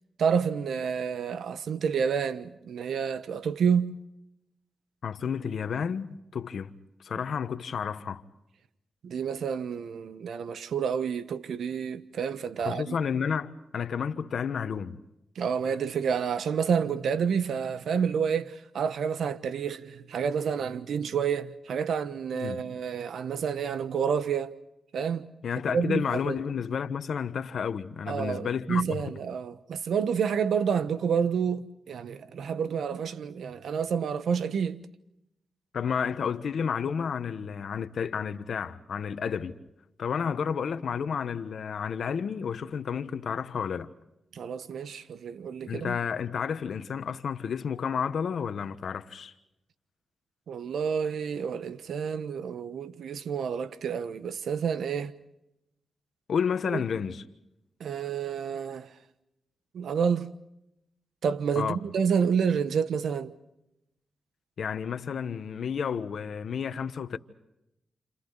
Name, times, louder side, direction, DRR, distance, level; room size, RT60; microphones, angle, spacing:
voice 1, 0.2-4.0 9.0-13.0 15.4-24.6 24.9-25.3 25.7-26.4 28.1-34.8 44.3-46.0 50.5-55.1 56.7-56.8 57.8-58.9 59.7-60.3 61.2-63.3, right 7 dB, 80° right, 1.1 m, -29 dB
voice 2, 5.0-6.7 7.0-8.2 12.6-15.0 22.3-22.6 25.4-29.0 35.7-39.5 40.0-43.9 45.7-49.3 56.3-57.2 61.5-61.8 64.6-67.2, left 7 dB, 70° left, 1.3 m, -31 dB
30.0 x 29.0 x 4.1 m
cardioid pair, 55°, 0 cm